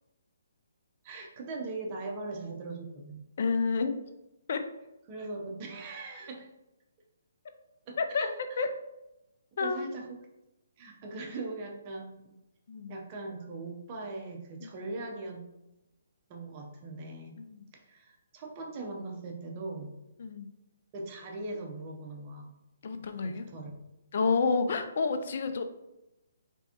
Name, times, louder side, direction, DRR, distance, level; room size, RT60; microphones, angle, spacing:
voice 1, 1.0-3.3 5.1-6.5 7.9-8.6 9.6-10.2 10.8-12.3 12.9-15.4 16.3-17.4 17.7-19.9 20.9-22.6 23.2-23.7, right 2 dB, 30° right, 1 dB, 0.8 m, -40 dB
voice 2, 3.4-4.0 4.5-4.6 8.0-8.3 8.6-8.7 9.6-9.9 12.7-12.9 14.6-14.7 17.5-17.6 20.2-20.5 22.8-23.5 24.1-25.6, left 4 dB, 55° left, 8 dB, 0.4 m, -29 dB
3.9 x 3.4 x 2.9 m, 0.94 s
hypercardioid pair, 155°, 0 cm